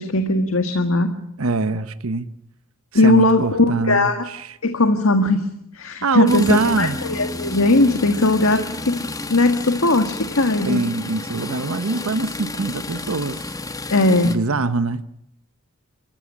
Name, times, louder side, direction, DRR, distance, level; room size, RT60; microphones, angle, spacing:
voice 1, 0.0-1.2 2.9-4.2 4.6-10.9 13.9-14.3, left 2 dB, 75° left, 7 dB, 1.8 m, -19 dB
voice 2, 1.4-2.3 2.9-4.6 6.0-7.0 10.6-13.5 14.2-15.0, right 3 dB, 85° right, 13 dB, 0.9 m, -23 dB
sound 1, 6.3-14.4, left 2 dB, 15° left, 1.1 m, -31 dB
29.0 x 15.0 x 8.7 m, 0.78 s
head